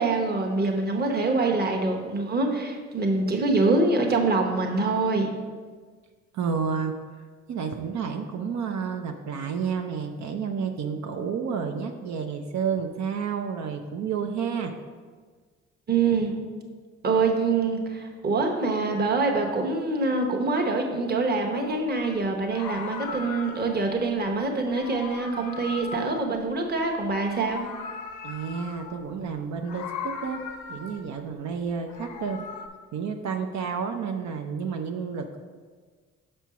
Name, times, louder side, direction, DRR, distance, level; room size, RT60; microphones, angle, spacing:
voice 1, 0.0-5.3 15.9-16.4 17.0-27.6, right 3 dB, 30° right, 2 dB, 1.0 m, -25 dB
voice 2, 6.3-6.9 7.5-14.7 28.2-30.4 30.7-32.4 32.9-35.4, right 6 dB, 65° right, 4 dB, 0.6 m, -30 dB
Meow, 21.6-21.8 22.4-23.9 24.6-26.9 27.1-29.1 29.6-31.2 31.7-32.7, left 6 dB, 80° left, 0.7 m, -38 dB
6.1 x 4.4 x 5.6 m, 1.5 s
cardioid pair, 90°, 30 cm